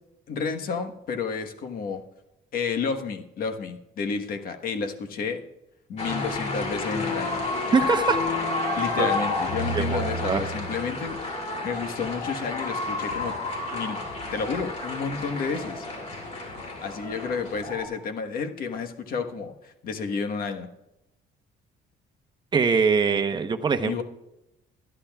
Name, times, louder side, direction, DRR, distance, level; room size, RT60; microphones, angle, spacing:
voice 1, 0.3-2.0 2.5-5.4 5.9-7.5 8.8-13.4 13.7-14.0 14.3-15.9 16.8-20.7 23.8-24.0, left 5 dB, 60° left, 5 dB, 1.3 m, -31 dB
sound 1, 6.0-17.8, left 2 dB, 40° left, 2.8 m, -30 dB
voice 2, 7.7-8.2 9.0-9.1 9.7-10.4 22.5-24.0, right 5 dB, 25° right, 8 dB, 0.9 m, -23 dB
22.0 x 11.5 x 2.4 m, 0.92 s
cardioid pair, 110°, 17 cm